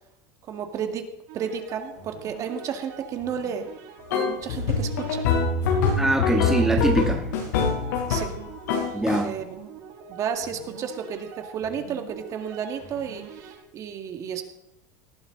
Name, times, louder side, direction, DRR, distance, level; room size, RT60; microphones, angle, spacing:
voice 1, 0.5-1.1 1.3-3.7 4.1-5.2 8.1-8.4 8.7-8.9 9.2-9.4 10.1-14.4, right 7 dB, 35° right, 6 dB, 1.8 m, -32 dB
sound 1, 1.3-13.6, right 8 dB, 70° right, 7.4 m, -45 dB
sound 2, 4.1-8.4 8.7-9.2, left 4 dB, 85° left, 6.1 m, -24 dB
voice 2, 6.0-7.2 8.9-9.3, right 1 dB, 5° right, 1 dB, 1.4 m, -23 dB
19.0 x 14.0 x 3.9 m, 0.85 s
supercardioid pair, 145°, 9 cm